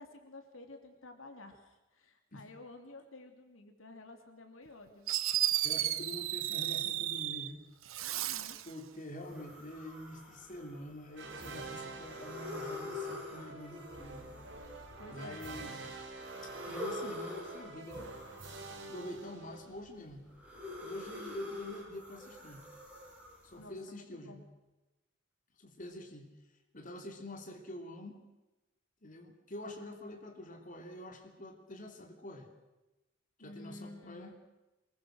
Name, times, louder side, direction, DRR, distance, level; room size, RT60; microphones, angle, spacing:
voice 1, 0.0-5.1 8.0-8.6 15.0-15.4 23.6-24.4 33.4-34.3, left 2 dB, 80° left, 5 dB, 3.1 m, -51 dB
Fireworks, 4.7-4.8 5.1-7.5 7.9-8.7, right 13 dB, 90° right, 1.0 m, -33 dB
voice 2, 5.6-7.6 8.2-8.3 8.6-14.3 14.7-16.0 16.4-18.1 18.8-20.3 20.8-22.6 23.4-24.4 25.6-26.4 26.7-28.2 29.0-32.5 33.4-34.3, left 1 dB, 40° left, 3 dB, 3.1 m, -46 dB
sound 1, 9.2-11.4 11.9-15.6 16.1-19.3 19.8-23.6, left 1 dB, 5° right, 7.2 m, -45 dB
sound 2, 11.2-20.0, right 3 dB, 60° right, 3.6 m, -47 dB
24.5 x 22.0 x 6.5 m, 1.0 s
head